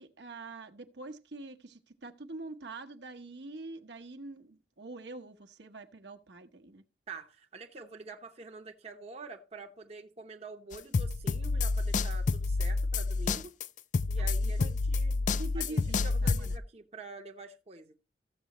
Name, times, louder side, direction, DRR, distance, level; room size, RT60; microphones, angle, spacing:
voice 1, 0.0-6.8 14.2-14.7 15.3-16.6, right 2 dB, 65° right, 1.0 m, -45 dB
voice 2, 7.1-13.5 14.1-15.3 15.5-17.9, right 4 dB, 35° right, 0.8 m, -47 dB
sound 1, 10.7-16.6, left 3 dB, 45° left, 0.4 m, -29 dB
14.0 x 7.5 x 3.0 m
head